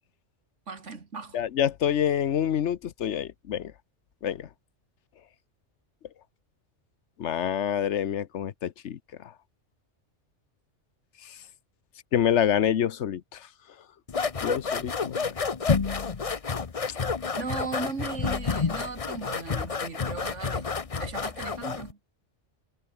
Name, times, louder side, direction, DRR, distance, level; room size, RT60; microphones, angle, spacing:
voice 1, 0.7-1.4 17.4-22.0, right 4 dB, 80° right, 2.6 m, -37 dB
voice 2, 1.3-3.7 4.2-4.5 7.2-9.0 12.1-13.4 14.4-15.3, left 9 dB, 75° left, 1.1 m, -27 dB
sound 1, 14.1-21.9, left 5 dB, 30° left, 0.9 m, -29 dB
omnidirectional pair, 1.2 m